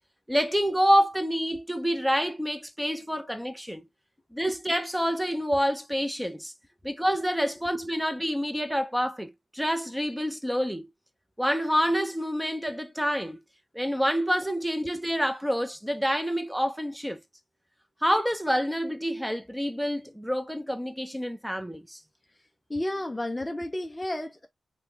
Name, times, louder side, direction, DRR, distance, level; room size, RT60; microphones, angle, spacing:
voice 1, 0.3-3.8 4.3-6.5 6.8-10.9 11.4-13.4 13.7-17.2 18.0-22.0, equal, 5° right, 0.8 m, -27 dB
voice 2, 22.7-24.5, left 1 dB, 20° left, 0.5 m, -31 dB
3.6 x 2.3 x 3.1 m
cardioid pair, 45°, 0 cm